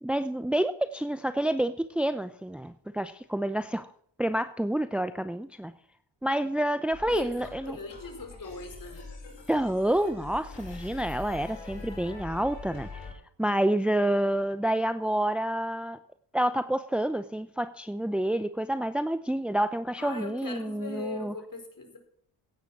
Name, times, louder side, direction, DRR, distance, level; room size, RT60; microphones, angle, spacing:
voice 1, 0.0-3.9 4.2-5.7 6.2-7.8 9.5-13.1 13.4-16.0 16.3-21.3, right 1 dB, ahead, 0.7 m, -28 dB
sound 1, 6.9-13.1, left 3 dB, 65° left, 6.1 m, -43 dB
voice 2, 7.0-9.0 20.0-22.0, left 3 dB, 45° left, 4.8 m, -40 dB
16.0 x 9.5 x 6.1 m
supercardioid pair, 55°, 47 cm